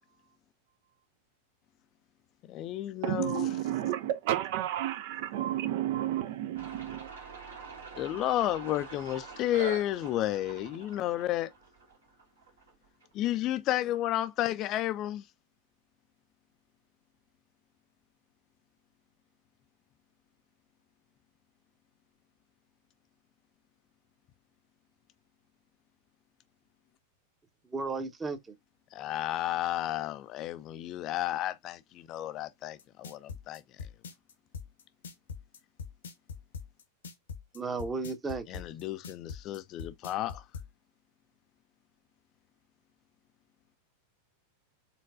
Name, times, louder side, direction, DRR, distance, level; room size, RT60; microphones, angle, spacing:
voice 1, 2.5-3.5 8.0-11.5 13.1-15.2 28.9-33.6 38.5-40.4, left 13 dB, 35° left, 0.4 m, -32 dB
voice 2, 3.0-7.1, right 12 dB, 50° right, 0.4 m, -31 dB
sound 1, 6.6-13.1, right 4 dB, 70° right, 1.9 m, -45 dB
voice 3, 27.7-28.5 37.5-38.6, right 4 dB, 15° right, 0.9 m, -34 dB
sound 2, 32.8-40.7, left 6 dB, 65° left, 0.8 m, -42 dB
4.3 x 3.9 x 2.5 m
figure-of-eight pair, 90°, 0 cm